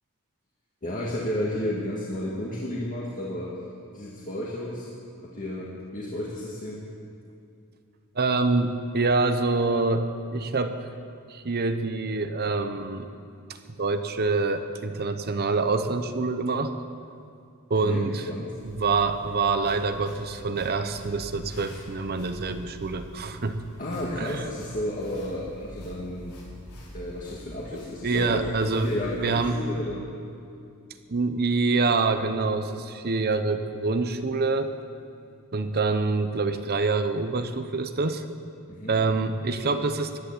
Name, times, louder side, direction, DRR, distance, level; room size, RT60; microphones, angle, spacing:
voice 1, 0.8-3.6 3.9-4.9 5.2-6.8 17.8-18.5 23.8-26.3 26.9-28.5 28.8-30.1 38.7-39.0, left 1 dB, 35° left, -5 dB, 1.9 m, -32 dB
voice 2, 8.2-10.8 11.3-13.1 13.8-16.7 17.7-18.2 18.6-23.6 24.2-24.4 28.0-28.9 29.2-29.6 31.1-34.7 35.5-38.2 38.9-40.2, right 3 dB, 45° right, 9 dB, 0.8 m, -26 dB
sound 1, 18.6-29.5, equal, 85° left, 4.7 m, -45 dB
15.0 x 10.5 x 8.6 m, 2.5 s
head